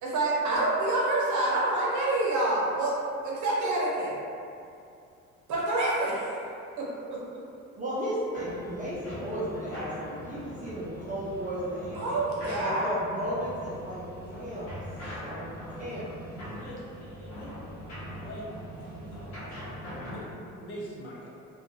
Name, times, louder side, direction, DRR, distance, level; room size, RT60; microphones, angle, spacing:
voice 1, 0.0-3.0 3.2-4.2 5.5-6.4 6.8-7.2 11.9-12.9, right 2 dB, 40° right, -5 dB, 0.7 m, -27 dB
voice 2, 7.7-12.2 12.6-14.7 15.2-16.1, equal, 20° right, -7 dB, 0.4 m, -34 dB
sound 1, 8.3-20.3, equal, 40° left, 1.0 m, -41 dB
voice 3, 16.4-17.5 18.2-18.5 18.8-19.2 20.0-21.3, equal, 75° left, -7 dB, 0.7 m, -43 dB
2.5 x 2.2 x 2.7 m, 2.6 s
figure-of-eight pair, 50°, 43 cm